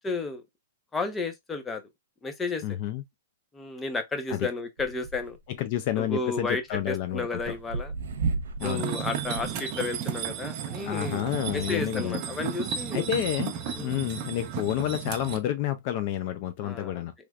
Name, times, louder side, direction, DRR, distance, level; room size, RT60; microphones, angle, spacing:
voice 1, 0.0-0.4 0.9-1.8 2.2-2.6 3.5-5.4 6.0-7.9 8.6-11.2 11.5-13.0 13.8-14.0 16.6-17.1, left 3 dB, 15° left, 0.7 m, -32 dB
voice 2, 2.6-3.0 4.3-4.5 5.5-7.5 8.6-8.9 10.8-12.2 12.9-13.5 13.8-17.1, left 12 dB, 45° left, 0.4 m, -29 dB
sound 1, 4.8-5.6 6.4-8.8 9.2-9.6 10.7-12.0 12.8-12.9, right 4 dB, 75° right, 0.8 m, -35 dB
sound 2, 8.6-15.4, right 7 dB, 40° right, 0.7 m, -33 dB
3.3 x 3.1 x 2.3 m
hypercardioid pair, 140°, 0 cm